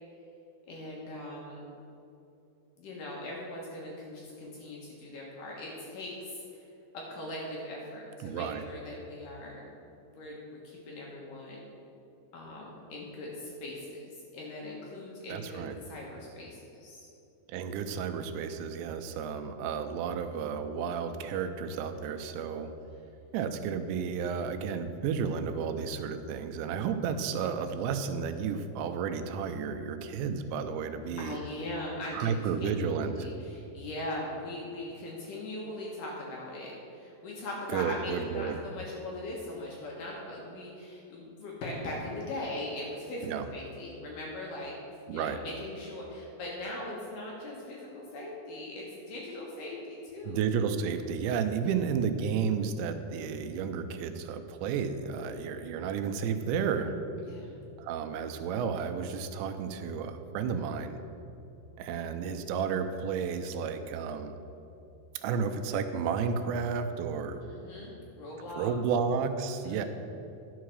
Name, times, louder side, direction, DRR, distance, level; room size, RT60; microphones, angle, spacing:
voice 1, 0.7-1.7 2.8-6.7 6.9-9.7 10.1-11.6 12.3-17.1 26.7-26.8 31.2-32.4 32.6-44.7 45.0-50.5 51.6-52.0 57.3-57.6 58.1-58.2 67.4-68.7 69.6-69.8, left 1 dB, 65° left, -3 dB, 2.3 m, -40 dB
voice 2, 8.2-8.6 15.3-15.8 17.5-22.7 23.3-31.4 32.1-33.3 37.7-38.6 43.2-43.5 45.1-45.4 50.3-56.9 57.8-61.0 61.8-64.4 65.2-67.4 68.6-69.8, right 6 dB, 85° right, 8 dB, 2.8 m, -32 dB
11.0 x 5.6 x 6.2 m, 2.8 s
omnidirectional pair, 5.1 m